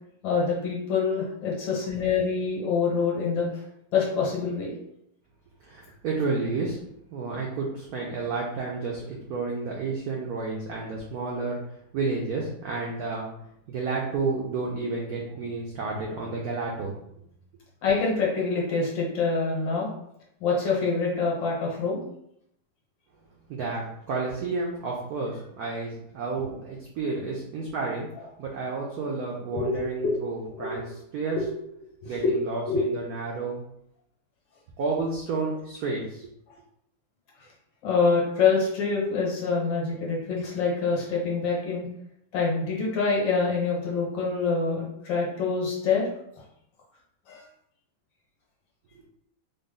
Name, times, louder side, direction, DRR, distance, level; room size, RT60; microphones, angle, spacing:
voice 1, 0.2-3.6 3.9-4.7 17.8-19.9 20.4-22.0 29.5-30.2 30.5-30.8 31.3-31.5 32.0-32.8 37.4-37.5 37.8-41.9 42.3-46.1 47.3-47.4, left 4 dB, 65° left, -4 dB, 1.7 m, -26 dB
voice 2, 5.6-6.8 7.1-11.6 11.9-13.3 13.7-17.0 23.5-28.1 28.4-30.8 31.1-31.4 32.0-33.7 34.8-36.3 48.9-49.1, right 3 dB, 80° right, -2 dB, 0.8 m, -31 dB
3.9 x 2.0 x 3.6 m, 0.75 s
omnidirectional pair, 2.2 m